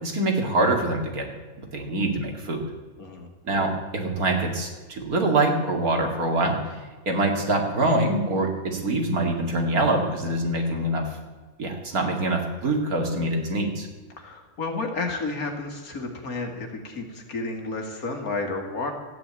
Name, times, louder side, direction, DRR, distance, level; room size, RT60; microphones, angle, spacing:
voice 1, 0.0-1.3 1.7-2.7 3.4-6.8 7.1-11.0 11.6-13.9, right 2 dB, 80° right, 2 dB, 2.8 m, -24 dB
voice 2, 3.0-3.3 14.2-18.9, left 3 dB, 75° left, 3 dB, 2.6 m, -31 dB
13.5 x 9.2 x 8.9 m, 1.3 s
omnidirectional pair, 1.5 m